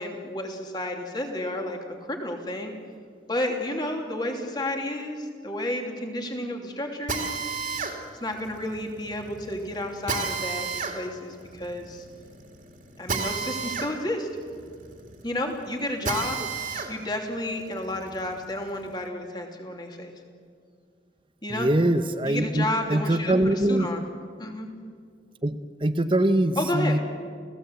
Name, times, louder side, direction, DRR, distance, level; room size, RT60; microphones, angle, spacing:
voice 1, 0.0-1.8 2.1-2.7 3.3-7.4 8.1-12.0 13.0-14.3 15.2-16.4 16.9-20.1 21.4-21.7 22.2-24.0 24.4-24.7 26.6-27.0, left 1 dB, 25° left, 2 dB, 2.9 m, -31 dB
Drill, 7.1-16.9 17.4-19.0, right 4 dB, 45° right, 2.7 m, -33 dB
voice 2, 21.5-23.9 25.4-27.0, right 1 dB, 25° right, 9 dB, 0.8 m, -23 dB
29.0 x 17.0 x 8.1 m, 2.1 s
head